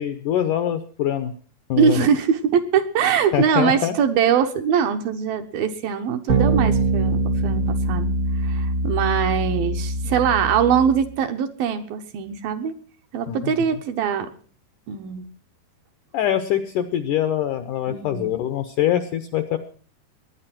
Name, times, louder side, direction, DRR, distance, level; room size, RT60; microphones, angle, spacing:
voice 1, 0.0-1.3 1.7-2.0 3.3-4.0 13.3-13.5 16.1-19.6, left 10 dB, 75° left, 10 dB, 1.9 m, -23 dB
voice 2, 1.8-8.1 8.4-12.8 13.1-14.3 14.9-15.2 17.9-18.3, right 7 dB, 70° right, 6 dB, 2.6 m, -22 dB
sound 1, 6.3-11.1, right 2 dB, 55° right, 1.0 m, -23 dB
21.0 x 9.7 x 6.0 m, 0.42 s
omnidirectional pair, 4.7 m